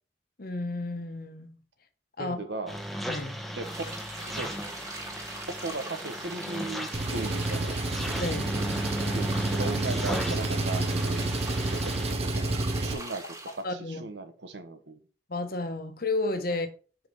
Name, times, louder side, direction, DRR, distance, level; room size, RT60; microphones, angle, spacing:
voice 1, 0.4-1.6 2.2-2.4 3.1-3.4 8.2-8.6 13.6-14.0 15.3-16.7, left 2 dB, 60° left, 1.0 m, -32 dB
voice 2, 2.2-2.8 3.6-3.9 4.2-4.5 5.6-7.9 9.1-9.2 9.6-15.0 16.5-16.6, right 3 dB, 85° right, 1.1 m, -37 dB
sound 1, 2.7-12.1, equal, ahead, 1.0 m, -36 dB
sound 2, 3.6-13.6, right 2 dB, 20° right, 1.5 m, -42 dB
Engine, 6.9-12.9, right 2 dB, 35° right, 0.6 m, -29 dB
5.0 x 4.9 x 5.3 m
head